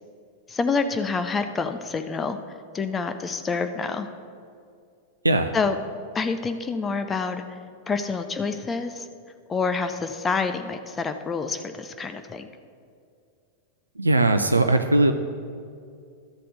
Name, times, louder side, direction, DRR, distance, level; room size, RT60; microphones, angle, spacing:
voice 1, 0.5-2.4 2.7-4.1 5.5-5.8 6.1-7.6 7.9-9.1 9.5-12.5, left 4 dB, 20° left, 8 dB, 0.5 m, -27 dB
voice 2, 14.0-15.1, right 2 dB, 80° right, 7 dB, 0.4 m, -19 dB
12.5 x 4.2 x 6.4 m, 2.3 s
figure-of-eight pair, 90°, 0 cm